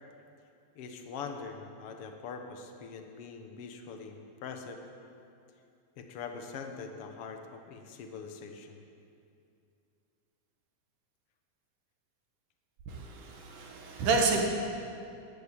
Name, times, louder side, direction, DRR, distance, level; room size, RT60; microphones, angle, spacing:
voice 1, 0.7-4.8 6.0-8.8, left 5 dB, 70° left, 5 dB, 1.4 m, -43 dB
voice 2, 12.9-14.4, right 4 dB, 65° right, 1 dB, 3.0 m, -29 dB
13.0 x 12.0 x 8.9 m, 2.5 s
omnidirectional pair, 4.3 m